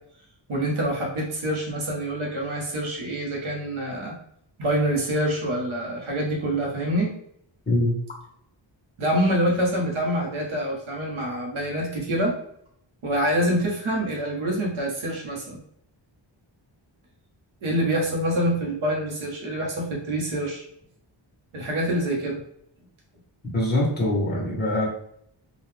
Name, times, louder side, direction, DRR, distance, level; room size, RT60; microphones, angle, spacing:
voice 1, 0.5-4.1 4.6-7.1 9.0-12.3 13.0-15.6 17.6-20.6 21.5-22.4, equal, 90° right, -1 dB, 1.3 m, -26 dB
voice 2, 7.7-8.0 23.5-24.9, left 1 dB, 20° left, -4 dB, 1.2 m, -23 dB
3.9 x 2.5 x 3.3 m, 0.70 s
wide cardioid pair, 175°, 47 cm